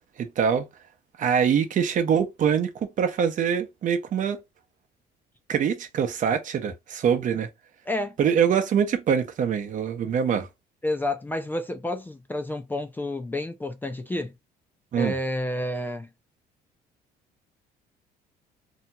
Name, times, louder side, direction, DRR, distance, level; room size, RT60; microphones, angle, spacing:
voice 1, 0.2-0.6 1.2-4.4 5.5-7.5 8.2-10.5 14.9-15.1, right 7 dB, 50° right, 0.7 m, -24 dB
voice 2, 7.9-8.2 10.8-14.3 15.0-16.1, left 1 dB, 10° left, 0.4 m, -30 dB
2.8 x 2.7 x 2.2 m
cardioid pair, 110°, 17 cm